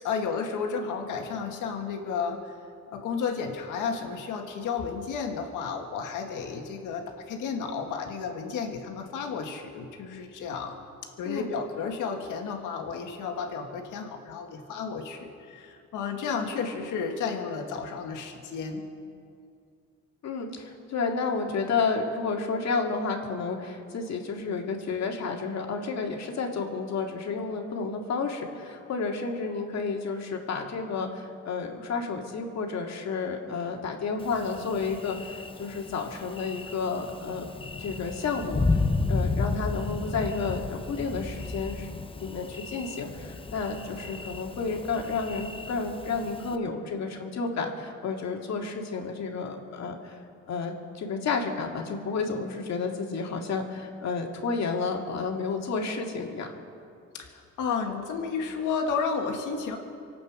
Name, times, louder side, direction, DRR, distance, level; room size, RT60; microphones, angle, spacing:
voice 1, 0.0-2.6 2.9-10.7 11.2-18.9 57.1-59.8, left 5 dB, 85° left, 3 dB, 1.9 m, -32 dB
voice 2, 20.2-37.5 37.8-38.8 39.1-50.2 50.5-56.5, left 4 dB, 60° left, 2 dB, 2.2 m, -31 dB
Thunder, 34.2-46.6, left 3 dB, 20° left, 0.8 m, -33 dB
25.0 x 8.6 x 6.2 m, 2.4 s
cardioid pair, 90°, 30 cm